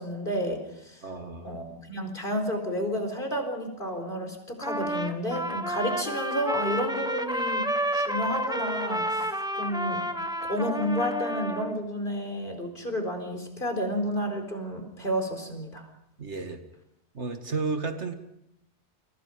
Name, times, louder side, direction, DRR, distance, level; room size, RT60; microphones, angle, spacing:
voice 1, 0.0-1.0 1.4-10.0 10.5-15.9, equal, 50° left, 6 dB, 4.5 m, -31 dB
voice 2, 1.0-1.5 16.2-16.6 17.1-18.1, right 4 dB, 85° right, 7 dB, 2.4 m, -32 dB
Trumpet, 4.6-11.7, equal, 5° right, 1.3 m, -30 dB
29.5 x 24.5 x 5.3 m, 0.79 s
omnidirectional pair, 1.2 m